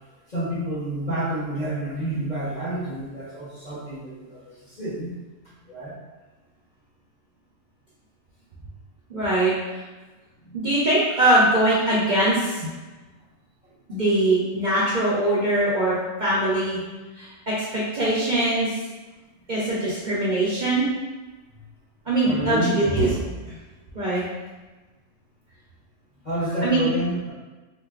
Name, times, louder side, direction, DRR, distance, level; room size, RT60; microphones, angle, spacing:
voice 1, 0.3-5.1 5.7-6.0 10.4-10.6 22.2-23.2 24.2-24.3 26.2-27.3, right 1 dB, 35° left, -9 dB, 1.1 m, -29 dB
voice 2, 9.1-9.5 10.5-12.7 13.9-15.9 16.2-16.8 17.2-18.7 19.5-20.8 22.1-23.1 23.9-24.2 26.6-26.9, right 1 dB, 45° right, -8 dB, 0.7 m, -22 dB
4.4 x 2.6 x 2.4 m, 1.2 s
omnidirectional pair, 1.4 m